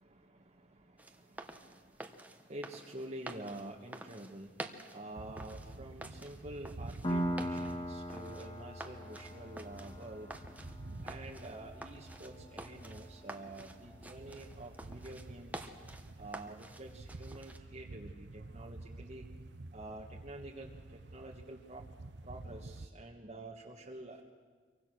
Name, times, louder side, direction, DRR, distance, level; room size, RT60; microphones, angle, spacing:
voice 1, 0.0-10.3 11.0-15.7 16.2-19.3 19.7-21.8 22.2-24.2, right 1 dB, 40° right, -1 dB, 1.6 m, -48 dB
sound 1, 1.0-17.6, right 1 dB, 10° right, 1.3 m, -50 dB
sound 2, 5.1-22.9, right 2 dB, 85° right, 0.9 m, -50 dB
Piano, 7.0-14.4, equal, 30° left, 2.2 m, -41 dB
27.0 x 23.5 x 6.3 m, 1.5 s
head